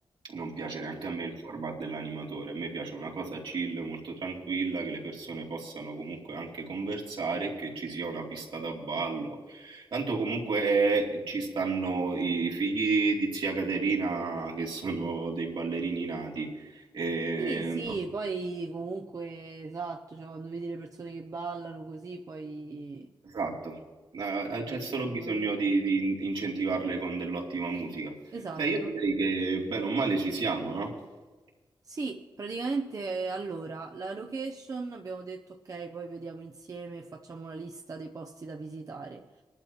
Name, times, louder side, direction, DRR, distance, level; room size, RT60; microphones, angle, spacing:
voice 1, 0.2-17.9 23.2-23.8 24.1-28.1 28.6-30.9, right 3 dB, 75° right, -3 dB, 2.7 m, -31 dB
voice 2, 17.4-23.1 24.7-25.5 28.3-29.0 31.8-39.3, right 4 dB, 40° right, 3 dB, 0.7 m, -37 dB
21.0 x 11.5 x 2.9 m, 1.3 s
wide cardioid pair, 100°, 9 cm